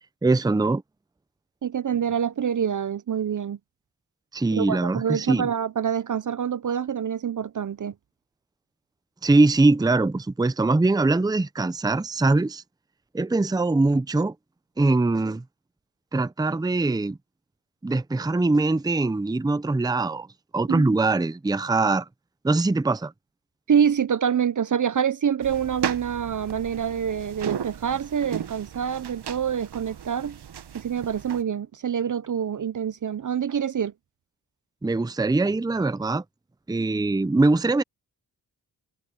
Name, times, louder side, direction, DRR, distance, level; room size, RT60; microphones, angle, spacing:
voice 1, 0.2-0.8 4.3-5.5 9.2-12.6 13.1-14.3 14.8-15.4 16.1-17.2 17.8-20.3 20.5-22.1 22.4-23.1 34.8-36.2 36.7-37.8, right 2 dB, 10° right, 0.6 m, -22 dB
voice 2, 1.6-3.6 4.5-7.9 20.7-20.9 23.7-30.4 30.7-33.9, right 8 dB, 45° right, 0.7 m, -26 dB
sound 1, 25.4-31.4, right 8 dB, 65° right, 1.2 m, -36 dB
cardioid pair, 55°, 42 cm